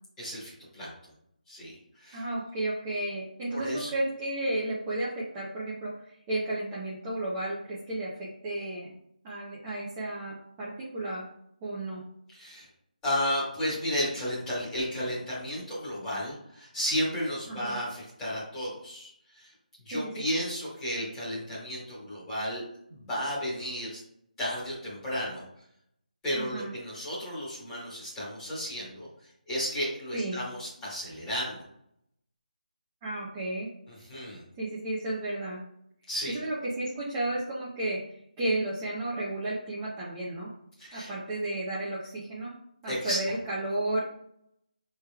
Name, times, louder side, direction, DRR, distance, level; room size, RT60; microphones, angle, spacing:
voice 1, 0.2-0.9 1.5-2.2 3.5-3.9 12.3-12.7 13.0-19.5 19.8-22.6 22.9-24.0 24.4-25.4 26.2-29.1 29.5-31.6 33.9-34.4 36.1-36.4 40.8-41.1 42.9-43.2, equal, 5° left, -9 dB, 1.2 m, -33 dB
voice 2, 2.1-8.9 9.2-11.2 11.6-12.0 17.5-17.8 19.9-20.3 26.3-26.7 30.1-30.4 33.0-33.7 34.6-35.6 36.3-40.5 40.9-42.5 42.8-44.0, right 1 dB, 10° right, -7 dB, 0.4 m, -33 dB
5.9 x 3.2 x 2.2 m, 0.74 s
figure-of-eight pair, 175°, 5 cm